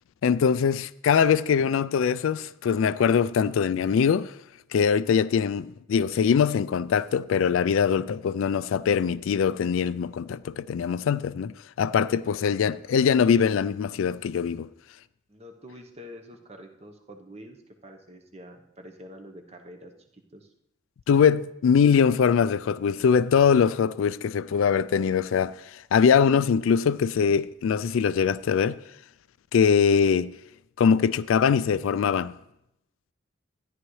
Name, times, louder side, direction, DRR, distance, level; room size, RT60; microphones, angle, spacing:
voice 1, 0.2-4.3 4.7-14.7 21.1-28.8 29.5-30.3 30.8-32.4, left 6 dB, 80° left, 0.3 m, -22 dB
voice 2, 15.3-19.9 20.3-20.5, equal, 30° right, 1.0 m, -46 dB
13.5 x 9.9 x 3.2 m
head